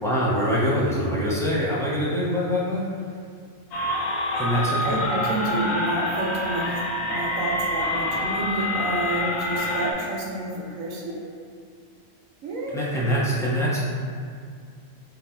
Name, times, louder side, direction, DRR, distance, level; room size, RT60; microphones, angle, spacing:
voice 1, 0.0-2.9 4.3-5.0 12.7-13.8, equal, 5° left, -8 dB, 0.5 m, -24 dB
sound 1, 3.7-9.9, left 1 dB, 75° left, 1.1 m, -27 dB
voice 2, 4.8-6.8 7.1-11.1 12.4-12.7, right 2 dB, 75° right, -3 dB, 1.2 m, -29 dB
4.0 x 2.7 x 4.3 m, 2.2 s
omnidirectional pair, 1.4 m